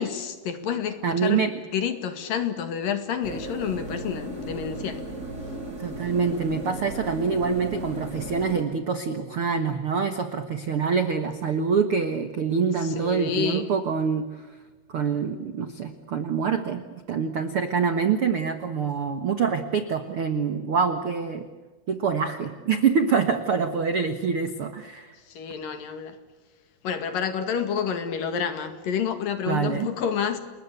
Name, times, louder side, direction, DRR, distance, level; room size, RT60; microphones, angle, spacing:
voice 1, 0.0-1.4 1.7-5.0 12.8-13.7 25.3-26.2 26.8-30.4, left 7 dB, 60° left, 9 dB, 3.4 m, -29 dB
voice 2, 1.0-1.5 5.8-14.5 14.9-16.8 17.1-21.4 21.9-25.1 29.5-29.9, right 6 dB, 70° right, 8 dB, 1.2 m, -25 dB
sound 1, 3.2-8.6, right 2 dB, 15° right, 4.8 m, -36 dB
29.5 x 21.0 x 8.4 m, 1.3 s
omnidirectional pair, 4.8 m